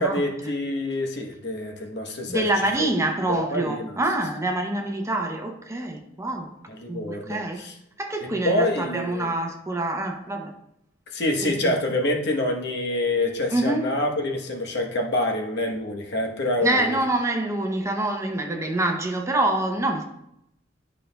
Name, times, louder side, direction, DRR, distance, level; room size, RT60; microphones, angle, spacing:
voice 1, 0.0-2.5 2.8-2.9 3.3-4.0 6.7-7.7 8.2-9.3 11.1-17.0, left 1 dB, 60° left, 1.0 m, -26 dB
voice 2, 2.3-6.5 6.9-7.6 8.0-10.5 11.4-11.7 13.5-13.9 16.6-20.0, right 2 dB, 15° right, 0.6 m, -26 dB
11.0 x 5.2 x 2.2 m
head